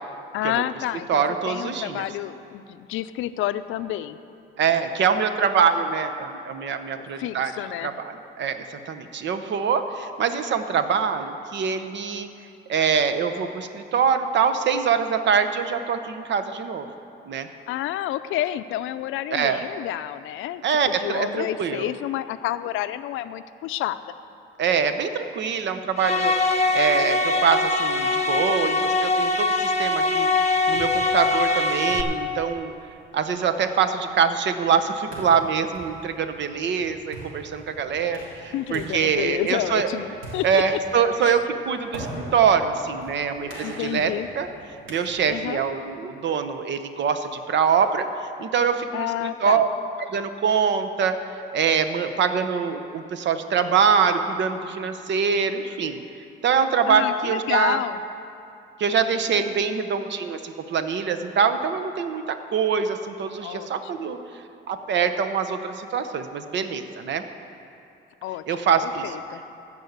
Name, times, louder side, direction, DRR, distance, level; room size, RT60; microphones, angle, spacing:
voice 1, 0.3-4.2 7.0-7.9 17.7-24.0 38.5-40.6 41.2-41.4 43.6-44.3 45.3-45.6 48.9-49.6 56.9-58.0 63.4-64.2 68.2-69.4, left 13 dB, 90° left, 12 dB, 0.5 m, -29 dB
voice 2, 1.1-2.0 4.6-7.5 7.8-12.3 12.7-16.9 17.3-17.5 19.3-19.6 20.6-21.9 24.6-32.7 33.1-39.9 40.4-44.5 44.9-48.1 48.4-49.7 50.0-51.2 51.5-56.0 56.4-57.8 58.8-64.2 64.7-67.2 68.5-69.1, right 6 dB, 65° right, 9 dB, 0.9 m, -24 dB
sound 1, 26.0-32.0, left 2 dB, 35° left, 1.0 m, -22 dB
sound 2, 30.4-45.6, right 1 dB, 85° right, 3.2 m, -42 dB
14.5 x 5.5 x 8.0 m, 2.6 s
cardioid pair, 90°, 20 cm